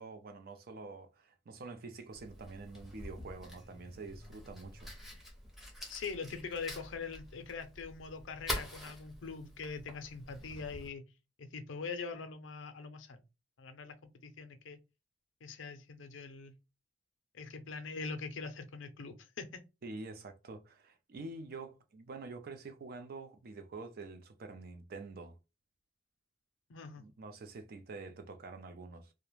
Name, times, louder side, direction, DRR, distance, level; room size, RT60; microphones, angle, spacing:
voice 1, 0.0-4.9 19.8-25.4 27.0-29.1, right 3 dB, 50° right, 0.4 m, -47 dB
Fire, 2.1-10.9, left 1 dB, ahead, 0.6 m, -46 dB
voice 2, 5.9-11.0 11.4-13.2 13.6-14.8 15.4-16.5 17.3-19.6 26.7-27.0, left 4 dB, 80° left, 0.5 m, -43 dB
2.4 x 2.1 x 3.0 m
head